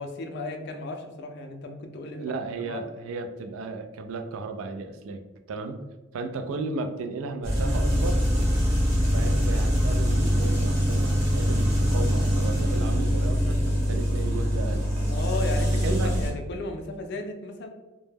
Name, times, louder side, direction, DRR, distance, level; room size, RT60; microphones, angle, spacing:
voice 1, 0.0-2.8 15.1-17.7, left 2 dB, 55° left, 4 dB, 0.3 m, -35 dB
voice 2, 2.2-5.2 5.5-5.8 6.1-8.2 9.1-14.9 15.8-16.2, right 3 dB, 75° right, 6 dB, 0.3 m, -34 dB
sound 1, 7.4-16.3, equal, 30° right, 1.0 m, -23 dB
2.1 x 2.0 x 3.2 m, 1.1 s
head